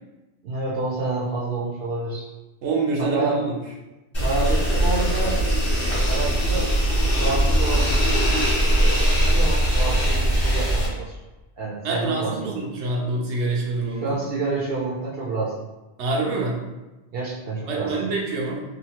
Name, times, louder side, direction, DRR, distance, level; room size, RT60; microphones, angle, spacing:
voice 1, 0.4-2.3 3.0-3.4 4.2-5.4 6.0-6.7 7.1-7.9 9.1-11.2 11.6-12.6 14.0-15.5 17.1-17.9, right 3 dB, 65° right, -4 dB, 0.7 m, -28 dB
voice 2, 2.6-3.6 11.8-14.2 16.0-16.6 17.7-18.6, right 3 dB, 90° right, -2 dB, 1.0 m, -26 dB
sound 1, 4.1-10.9, right 1 dB, 25° left, 0.9 m, -20 dB
2.8 x 2.4 x 2.8 m, 1.1 s
omnidirectional pair, 1.1 m